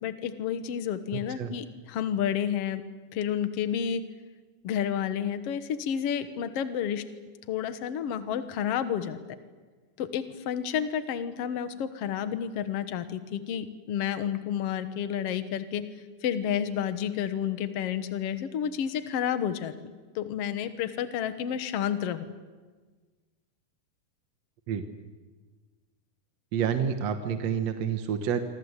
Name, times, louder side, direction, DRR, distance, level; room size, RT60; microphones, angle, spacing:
voice 1, 0.0-2.8 3.1-4.0 4.6-7.0 7.5-9.2 10.0-15.8 16.2-22.3, left 9 dB, 55° left, 10 dB, 2.1 m, -30 dB
voice 2, 26.5-28.4, right 7 dB, 60° right, 7 dB, 2.3 m, -28 dB
27.0 x 25.5 x 8.2 m, 1.4 s
omnidirectional pair, 3.6 m